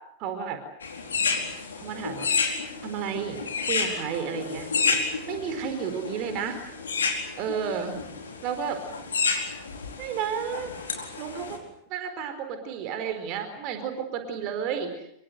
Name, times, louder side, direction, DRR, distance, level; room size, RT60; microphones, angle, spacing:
voice 1, 0.2-0.6 1.8-2.3 2.8-3.4 3.7-4.7 5.3-6.6 7.4-8.0 8.4-8.8 10.0-10.7 11.2-11.6 11.9-14.9, right 7 dB, 40° right, 7 dB, 4.5 m, -31 dB
sound 1, 0.8-11.6, left 5 dB, 70° left, 4.4 m, -30 dB
26.0 x 24.0 x 8.0 m, 0.74 s
figure-of-eight pair, 90°, 0 cm